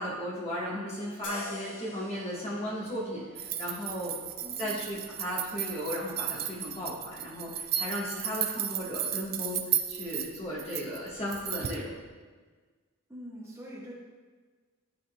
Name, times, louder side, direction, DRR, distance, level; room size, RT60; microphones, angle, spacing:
voice 1, 0.0-4.1 4.6-11.9, equal, 30° left, -6 dB, 1.4 m, -35 dB
sound 1, 1.2-8.5, left 3 dB, 80° left, 1.0 m, -49 dB
sound 2, 3.4-11.8, right 10 dB, 45° right, 0.4 m, -34 dB
voice 2, 4.4-4.8 13.1-13.9, equal, 15° right, -6 dB, 1.3 m, -44 dB
10.5 x 4.1 x 2.3 m, 1.4 s
head